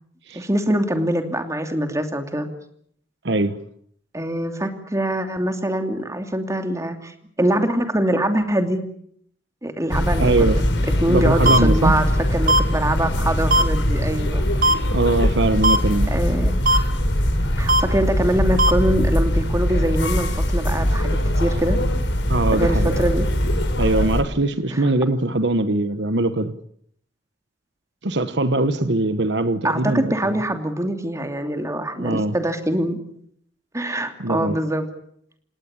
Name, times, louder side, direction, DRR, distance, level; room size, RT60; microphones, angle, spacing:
voice 1, 0.3-2.5 4.1-8.8 9.6-10.5 11.0-14.4 16.1-16.6 17.6-21.8 22.5-23.3 24.7-24.8 29.6-33.0 33.7-34.8, right 1 dB, 15° right, 2.8 m, -23 dB
voice 2, 3.2-3.6 10.2-10.6 11.1-11.9 14.9-16.1 22.3-23.0 23.8-26.5 28.0-30.1 32.0-32.4 34.2-34.6, right 2 dB, 70° right, 1.2 m, -21 dB
sound 1, 9.9-24.2, equal, 80° left, 5.1 m, -21 dB
sound 2, 11.4-11.6 12.5-12.6 13.5-13.6 14.6-14.7 15.6-15.8 16.7-16.8 17.7-17.8 18.6-18.7, right 1 dB, 50° right, 1.5 m, -16 dB
29.0 x 17.5 x 8.4 m
head